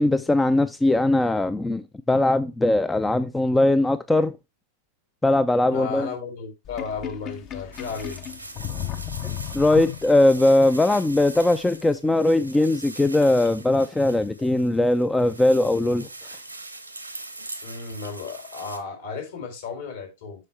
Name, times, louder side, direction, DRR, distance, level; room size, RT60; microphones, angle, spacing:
voice 1, 0.0-4.4 5.2-6.1 9.2-16.1, left 2 dB, 10° left, 0.5 m, -20 dB
voice 2, 5.7-8.5 17.6-20.5, left 5 dB, 60° left, 4.2 m, -34 dB
Sink (filling or washing), 6.6-10.4, left 11 dB, 35° left, 0.8 m, -34 dB
sound 1, 7.7-18.8, right 2 dB, 85° right, 1.1 m, -41 dB
7.5 x 6.2 x 3.3 m
figure-of-eight pair, 90°, 0 cm